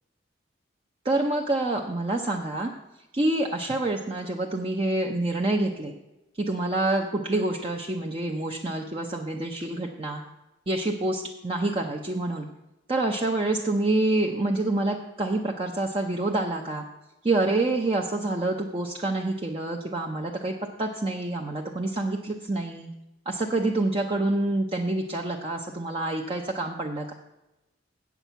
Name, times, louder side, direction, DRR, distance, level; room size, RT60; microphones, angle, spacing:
voice 1, 1.0-2.7 3.1-5.9 6.4-10.2 10.7-12.5 12.9-16.8 17.2-22.9 23.3-27.1, right 2 dB, 30° right, 1 dB, 0.6 m, -27 dB
8.1 x 6.0 x 8.0 m, 0.95 s
head